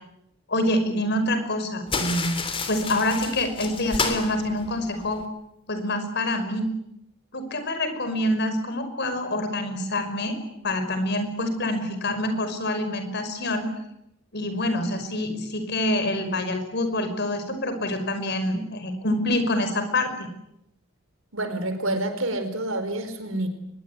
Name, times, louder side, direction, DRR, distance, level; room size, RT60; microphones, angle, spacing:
voice 1, 0.5-2.4 2.7-5.2 5.7-6.7 7.3-10.4 10.6-13.7 14.3-20.3, left 1 dB, 55° left, 8 dB, 5.6 m, -26 dB
sound 1, 1.9-5.3, left 4 dB, 25° left, 3.2 m, -31 dB
voice 2, 21.3-23.5, right 1 dB, 80° right, 8 dB, 4.7 m, -28 dB
24.0 x 21.5 x 9.9 m, 0.82 s
head